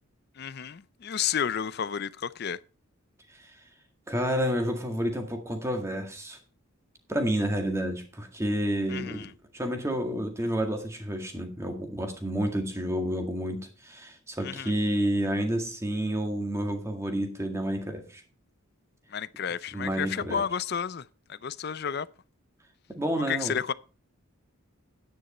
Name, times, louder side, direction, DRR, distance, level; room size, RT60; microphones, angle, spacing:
voice 1, 0.4-2.6 8.9-9.3 14.4-14.7 19.1-22.1 23.3-23.7, left 7 dB, 45° left, 0.4 m, -31 dB
voice 2, 4.1-6.4 7.1-9.3 9.5-18.2 19.7-20.4 22.9-23.5, equal, 10° right, 1.8 m, -30 dB
10.5 x 9.6 x 4.3 m
head